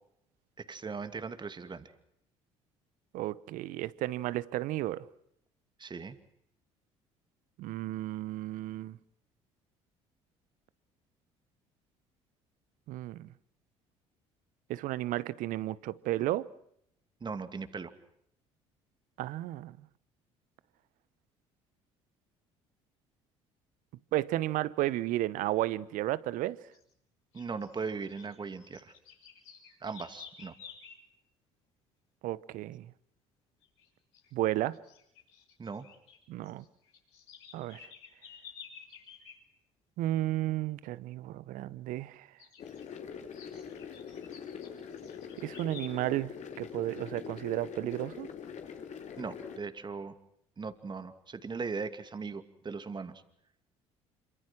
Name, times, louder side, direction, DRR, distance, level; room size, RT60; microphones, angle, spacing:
voice 1, 0.6-1.9 5.8-6.2 17.2-17.9 27.3-28.9 29.8-30.5 35.6-35.9 49.2-50.1 50.6-53.2, right 5 dB, 30° right, 2.5 m, -39 dB
voice 2, 3.1-5.1 7.6-9.0 12.9-13.3 14.7-16.5 19.2-19.8 24.1-26.6 32.2-32.9 34.3-34.8 36.3-36.6 37.5-37.9 40.0-42.3 45.4-48.3, right 15 dB, 65° right, 1.0 m, -33 dB
sound 1, 26.7-26.9 27.3-31.0 33.6-33.9 34.1-34.3 34.7-36.2 36.4-39.4 42.4-42.8 43.3-45.9, left 7 dB, 85° left, 6.6 m, -52 dB
sound 2, 42.6-49.6, left 7 dB, 55° left, 3.3 m, -44 dB
27.0 x 25.0 x 6.1 m
hypercardioid pair, 60°, 15 cm